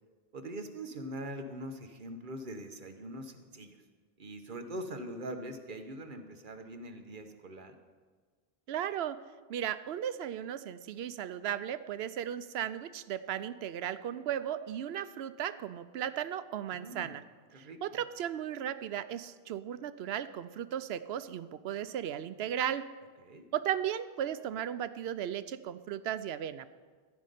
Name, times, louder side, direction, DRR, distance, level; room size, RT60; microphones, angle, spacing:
voice 1, 0.3-3.8 4.2-7.7 16.7-17.2 17.5-17.8 23.2-23.4, right 1 dB, 55° right, 6 dB, 1.2 m, -42 dB
voice 2, 8.7-9.2 9.5-17.2 17.6-22.9 23.5-26.7, right 10 dB, 80° right, 14 dB, 0.8 m, -36 dB
15.0 x 5.3 x 9.1 m, 1.5 s
omnidirectional pair, 1.0 m